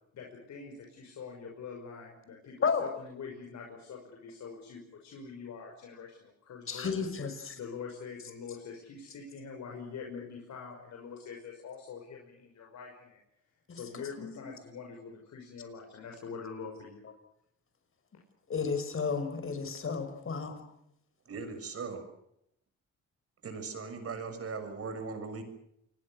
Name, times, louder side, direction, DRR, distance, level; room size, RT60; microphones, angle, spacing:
voice 1, 0.1-7.1 7.6-13.2 13.7-17.0, left 5 dB, 65° left, 1 dB, 6.0 m, -44 dB
voice 2, 6.7-7.6 13.7-13.8 14.2-14.3 18.5-20.6, left 5 dB, 45° left, 8 dB, 5.8 m, -32 dB
voice 3, 21.3-22.0 23.4-25.4, right 4 dB, 50° right, 8 dB, 6.7 m, -39 dB
28.0 x 21.0 x 6.6 m, 0.76 s
cardioid pair, 90°, 30 cm